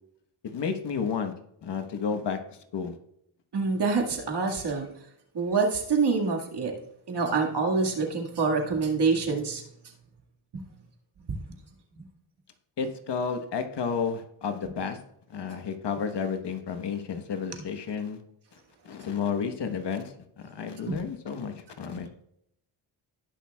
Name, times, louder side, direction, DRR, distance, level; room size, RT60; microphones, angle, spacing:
voice 1, 0.4-1.3 1.6-2.4 2.7-2.9 12.8-15.0 15.3-18.2 18.5-18.6 18.8-22.2, left 6 dB, 55° left, 7 dB, 1.2 m, -31 dB
voice 2, 3.5-4.9 5.3-6.7 7.1-9.6 10.5-10.6 11.3-11.4 12.0-12.1 15.5-15.6 20.9-21.0, right 4 dB, 55° right, 2 dB, 1.9 m, -26 dB
18.0 x 6.2 x 2.3 m, 0.74 s
cardioid pair, 75°, 49 cm